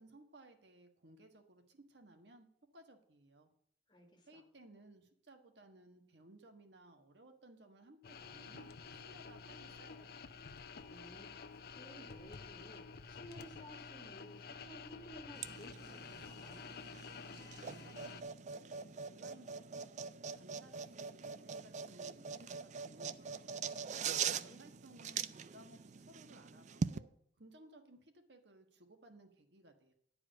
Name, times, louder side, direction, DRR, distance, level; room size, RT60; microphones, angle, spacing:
voice 1, 0.0-2.5 2.7-3.5 4.3-10.2 17.6-18.2 18.5-18.7 19.0-19.9 20.3-23.5 24.3-27.1 27.4-29.9, right 1 dB, 70° right, 5 dB, 1.4 m, -60 dB
voice 2, 3.9-4.4 10.9-16.6 24.0-24.6, equal, 25° left, 1 dB, 2.1 m, -56 dB
sound 1, 8.0-18.2, left 5 dB, 55° left, 0.6 m, -50 dB
sound 2, 15.3-27.0, right 6 dB, 40° right, 0.4 m, -43 dB
10.5 x 4.9 x 7.6 m, 0.66 s
head